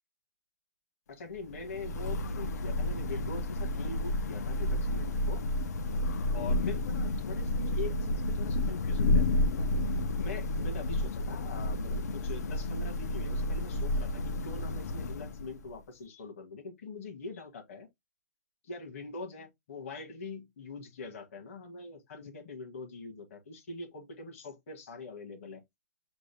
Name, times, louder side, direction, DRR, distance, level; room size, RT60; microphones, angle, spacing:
voice 1, 1.1-5.4 6.3-9.7 10.2-17.9 18.6-25.6, left 3 dB, 50° left, 2.0 m, -43 dB
Thunder / Rain, 1.4-15.7, left 1 dB, 70° left, 0.8 m, -31 dB
6.8 x 2.3 x 3.4 m
hypercardioid pair, 170°, 9 cm